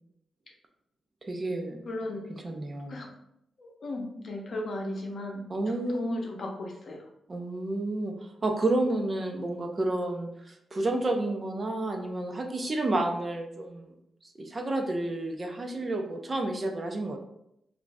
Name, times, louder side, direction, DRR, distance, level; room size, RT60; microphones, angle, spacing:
voice 1, 1.2-1.8 2.4-3.0 5.5-6.1 7.3-8.1 8.4-13.9 14.4-17.2, right 2 dB, 30° right, 3 dB, 0.4 m, -30 dB
voice 2, 1.9-2.6 2.9-3.1 3.6-5.4 5.7-7.0, left 1 dB, 50° left, 1 dB, 0.7 m, -36 dB
3.0 x 2.5 x 3.4 m, 0.77 s
wide cardioid pair, 150°, 0 cm